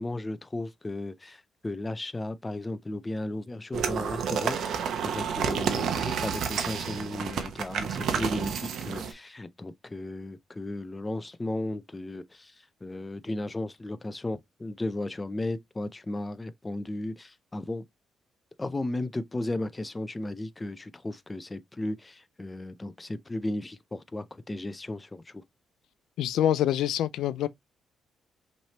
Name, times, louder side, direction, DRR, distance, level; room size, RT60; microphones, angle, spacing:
voice 1, 0.0-12.5 12.8-17.8 18.6-25.2, left 2 dB, 15° left, 0.5 m, -35 dB
sound 1, 3.7-9.1, right 7 dB, 70° right, 0.9 m, -30 dB
voice 2, 26.2-27.5, left 11 dB, 90° left, 0.3 m, -25 dB
5.8 x 3.2 x 2.8 m
cardioid pair, 115°, 0 cm